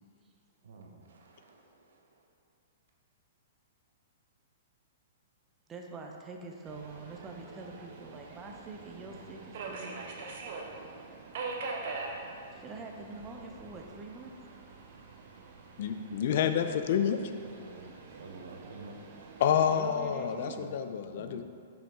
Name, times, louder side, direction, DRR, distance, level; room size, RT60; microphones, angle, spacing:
voice 1, 0.6-2.0 17.4-19.0 19.6-20.7 21.1-21.4, right 4 dB, 80° right, 1 dB, 0.9 m, -49 dB
voice 2, 5.7-10.5 10.8-11.1 12.5-14.3 19.7-20.7 21.2-21.4, right 3 dB, 15° right, 1 dB, 0.5 m, -45 dB
Subway metro underground, 6.6-19.7, right 3 dB, 55° right, 0.7 m, -44 dB
voice 3, 15.8-17.2 19.4-21.4, left 8 dB, 55° left, 9 dB, 0.4 m, -28 dB
5.5 x 5.2 x 3.6 m, 2.4 s
hypercardioid pair, 155°, 0 cm